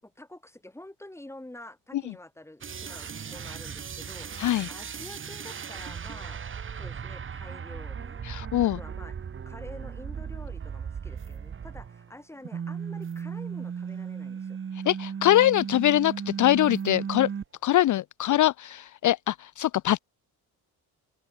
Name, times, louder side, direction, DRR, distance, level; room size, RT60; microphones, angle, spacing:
voice 1, 0.0-6.4 6.7-8.2 8.8-9.2 9.5-14.6 18.3-18.5, left 1 dB, 5° left, 7.3 m, -47 dB
sound 1, 2.6-12.1 12.4-17.4, right 7 dB, 30° right, 1.4 m, -36 dB
voice 2, 8.2-8.8 14.9-17.3 17.6-20.0, left 13 dB, 50° left, 0.6 m, -23 dB
cardioid pair, 130°, 39 cm